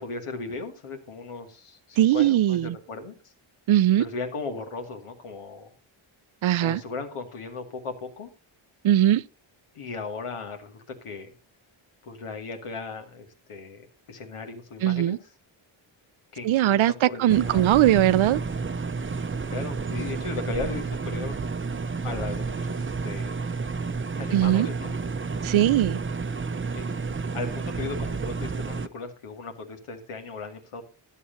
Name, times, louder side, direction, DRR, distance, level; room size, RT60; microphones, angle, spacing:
voice 1, 0.0-3.3 4.0-5.7 6.6-8.3 9.7-11.3 12.0-15.3 16.3-17.9 19.5-21.4 22.0-23.3 24.1-24.9 26.7-26.8 27.3-30.8, left 4 dB, 90° left, 2.3 m, -37 dB
voice 2, 2.0-2.8 3.7-4.0 6.4-6.8 8.8-9.2 14.8-15.2 16.4-18.4 24.3-24.7 25.4-26.0, right 13 dB, 70° right, 0.6 m, -20 dB
sound 1, 17.3-28.9, right 4 dB, 25° right, 0.7 m, -31 dB
14.0 x 10.0 x 2.7 m
cardioid pair, 70°, 50 cm